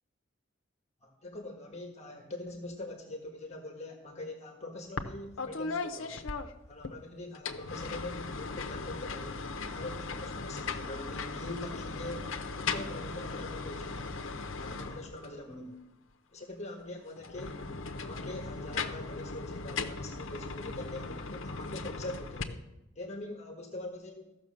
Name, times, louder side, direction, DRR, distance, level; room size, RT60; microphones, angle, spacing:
voice 1, 1.0-6.3 6.7-9.4 9.7-14.2 14.6-15.8 16.3-17.6 17.9-22.6 22.9-24.3, left 2 dB, 35° left, 3 dB, 1.5 m, -43 dB
sound 1, 5.0-5.1 5.4-6.9 7.3-15.4 17.2-22.4, left 4 dB, 75° left, 0.9 m, -38 dB
14.5 x 6.4 x 6.4 m, 0.92 s
head